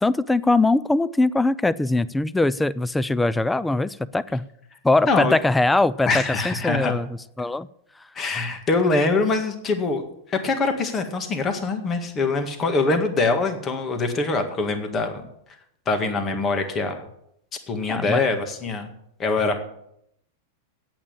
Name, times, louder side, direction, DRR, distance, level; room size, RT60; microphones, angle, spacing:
voice 1, 0.0-4.5 4.8-7.1 7.4-7.7 17.9-18.2, left 2 dB, 5° left, 18 dB, 0.4 m, -21 dB
voice 2, 6.1-6.9 8.2-10.0 10.3-15.2 15.9-17.1 17.5-18.9 19.2-19.6, left 3 dB, 25° left, 6 dB, 1.8 m, -23 dB
8.8 x 8.6 x 8.8 m, 0.74 s
hypercardioid pair, 125°, 0 cm